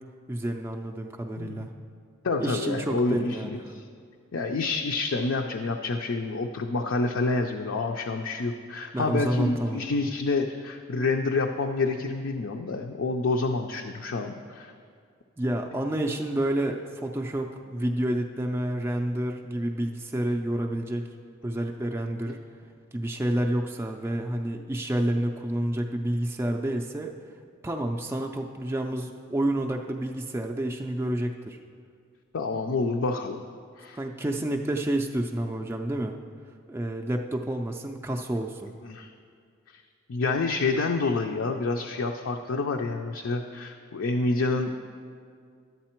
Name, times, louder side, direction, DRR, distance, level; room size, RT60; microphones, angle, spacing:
voice 1, 0.3-1.7 2.4-3.6 8.9-9.8 15.4-21.0 21.4-22.4 22.9-27.1 27.6-31.6 34.0-36.1 36.7-38.7, right 1 dB, 10° right, 1 dB, 0.3 m, -29 dB
voice 2, 1.4-1.7 2.2-3.8 4.3-14.7 32.3-33.4 33.8-34.0 38.8-39.1 39.7-39.8 40.1-44.7, left 3 dB, 65° left, 3 dB, 0.5 m, -28 dB
11.0 x 8.1 x 4.4 m, 2.2 s
head